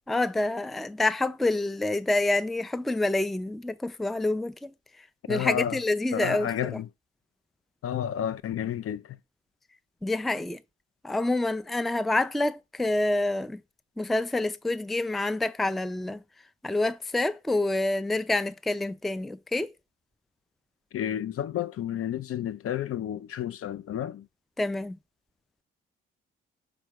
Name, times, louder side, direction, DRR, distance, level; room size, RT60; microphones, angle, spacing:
voice 1, 0.1-4.7 5.3-6.8 10.0-10.6 11.0-13.6 14.0-16.2 16.6-19.7 24.6-25.0, left 2 dB, ahead, 0.4 m, -27 dB
voice 2, 5.3-5.8 6.1-6.9 7.8-9.2 20.9-24.3, left 10 dB, 50° left, 0.5 m, -31 dB
5.3 x 4.4 x 4.5 m
hypercardioid pair, 45°, 30 cm